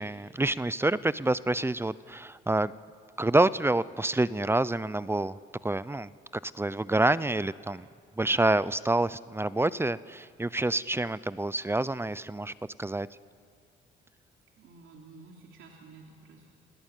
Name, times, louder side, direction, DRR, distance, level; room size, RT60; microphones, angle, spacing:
voice 1, 0.0-2.7 3.2-5.4 5.6-6.1 6.4-7.9 8.2-12.5 12.8-13.1, right 2 dB, 10° right, 18 dB, 0.6 m, -27 dB
voice 2, 14.6-16.5, right 3 dB, 75° right, 0 dB, 3.3 m, -51 dB
28.5 x 18.5 x 9.2 m, 2.1 s
cardioid pair, 90°, 20 cm